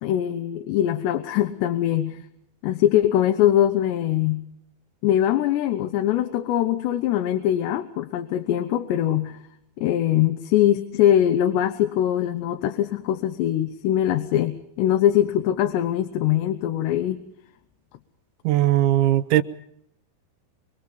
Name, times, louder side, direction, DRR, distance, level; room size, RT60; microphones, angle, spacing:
voice 1, 0.0-2.2 2.6-4.5 5.0-9.4 9.8-17.2, left 11 dB, 75° left, 7 dB, 3.2 m, -22 dB
voice 2, 18.4-19.4, right 13 dB, 80° right, 12 dB, 3.4 m, -19 dB
25.0 x 24.0 x 5.4 m, 0.77 s
omnidirectional pair, 5.2 m